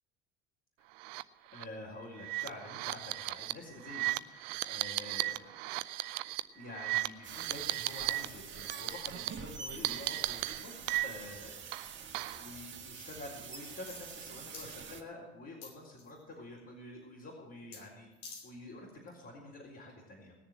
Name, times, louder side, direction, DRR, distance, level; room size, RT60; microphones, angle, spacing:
sound 1, 1.0-1.2 1.5-1.6 2.2-8.3 8.5-9.3 9.8-11.4 11.7-12.5, right 17 dB, 65° right, 0.6 m, -36 dB
voice 1, 1.5-5.5 6.5-10.7 11.0-11.5 12.3-18.1 18.4-20.4, left 2 dB, 40° left, -4 dB, 4.2 m, -48 dB
sound 2, 7.2-15.0, right 6 dB, 35° right, 2.0 m, -47 dB
sound 3, 13.8-14.2 14.5-14.7 15.6-16.2 17.7-17.8 18.1-18.5 18.9-19.0, left 4 dB, 60° left, 3.3 m, -48 dB
19.5 x 7.0 x 7.7 m, 1.1 s
hypercardioid pair, 65°, 32 cm